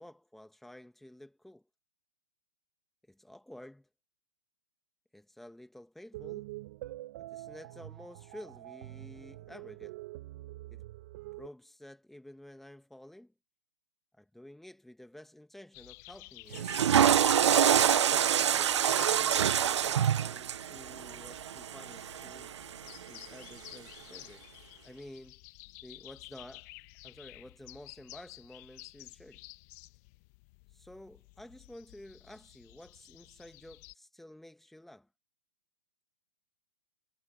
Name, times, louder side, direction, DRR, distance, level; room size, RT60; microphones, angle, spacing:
voice 1, 0.0-1.7 3.1-3.9 5.1-6.5 7.2-10.0 10.7-10.9 11.4-13.3 14.1-16.8 18.0-19.5 19.9-22.5 23.1-24.4 24.8-25.4 25.8-26.7 27.0-29.4 30.7-35.1, left 1 dB, ahead, 2.0 m, -51 dB
sound 1, 6.1-11.5, right 17 dB, 45° right, 1.0 m, -45 dB
sound 2, 15.7-33.9, left 24 dB, 35° left, 1.3 m, -52 dB
Water / Toilet flush, 16.5-22.8, right 9 dB, 80° right, 0.5 m, -26 dB
hypercardioid pair, 140°, 14 cm